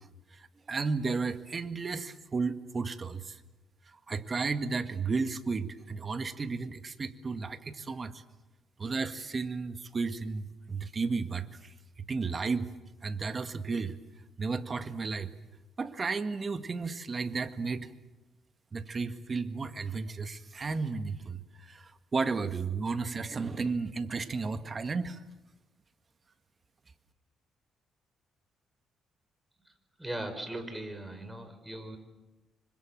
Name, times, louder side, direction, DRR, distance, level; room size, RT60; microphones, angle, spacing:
voice 1, 0.0-3.4 3.9-8.2 8.8-12.7 13.0-14.0 14.4-15.3 15.8-17.9 18.7-25.2, right 4 dB, 35° right, 10 dB, 1.9 m, -33 dB
voice 2, 30.0-32.0, right 1 dB, 10° right, 7 dB, 5.2 m, -39 dB
26.5 x 25.0 x 7.5 m, 1.1 s
cardioid pair, 90°, 0 cm